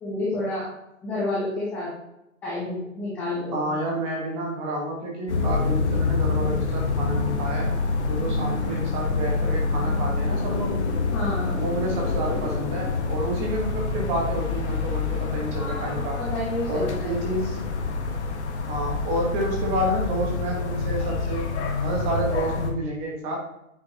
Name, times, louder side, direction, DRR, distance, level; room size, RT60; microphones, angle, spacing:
voice 1, 0.0-0.7 1.0-1.9 2.4-3.8 11.1-11.8 15.6-17.1, left 2 dB, 5° left, -8 dB, 0.7 m, -30 dB
voice 2, 3.5-7.7 8.0-10.8 11.5-16.2 16.7-17.6 18.7-21.5 21.8-23.4, right 1 dB, 15° right, -1 dB, 1.3 m, -29 dB
sound 1, 5.3-22.7, left 4 dB, 55° left, 1.6 m, -27 dB
8.8 x 6.7 x 2.9 m, 0.85 s
hypercardioid pair, 160°, 41 cm